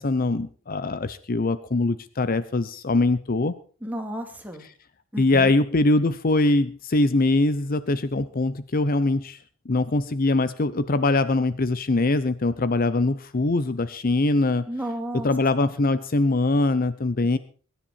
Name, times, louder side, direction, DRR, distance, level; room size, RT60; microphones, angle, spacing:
voice 1, 0.0-3.5 5.2-9.4 9.7-14.7 15.2-17.4, left 2 dB, 45° left, 14 dB, 0.7 m, -22 dB
voice 2, 3.8-4.6 5.1-5.5 14.7-15.3 15.6-15.8, right 1 dB, 10° right, 3 dB, 2.6 m, -33 dB
22.5 x 10.5 x 4.4 m, 0.40 s
head